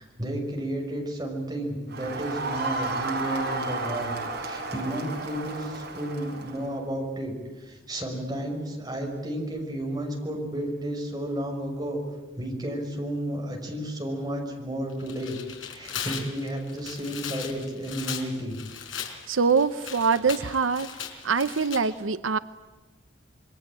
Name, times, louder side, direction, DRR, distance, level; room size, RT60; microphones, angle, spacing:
voice 1, 0.0-4.1 4.4-12.0 12.4-15.4 15.7-18.6, right 1 dB, 20° right, 1 dB, 6.1 m, -32 dB
Crowd, 1.9-6.7, right 3 dB, 60° right, 5.4 m, -32 dB
Tearing, 14.9-21.8, left 8 dB, 75° left, 4.5 m, -38 dB
voice 2, 19.3-20.9 21.2-22.4, right 5 dB, 80° right, 13 dB, 0.8 m, -24 dB
27.0 x 23.0 x 8.9 m, 1.3 s
head